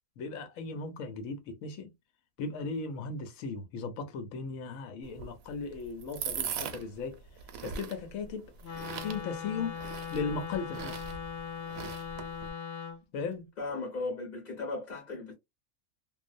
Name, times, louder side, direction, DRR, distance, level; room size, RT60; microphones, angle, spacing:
voice 1, 0.2-1.9 2.4-7.2 7.6-8.5 9.0-9.8 10.1-11.0 13.1-13.5, left 4 dB, 75° left, 1.1 m, -37 dB
sound 1, 5.0-12.5, right 7 dB, 80° right, 1.0 m, -41 dB
Wind instrument woodwind instrument, 8.6-13.0, left 7 dB, 60° left, 0.7 m, -40 dB
voice 2, 13.6-15.3, left 3 dB, 35° left, 1.1 m, -36 dB
2.6 x 2.0 x 2.5 m
omnidirectional pair, 1.4 m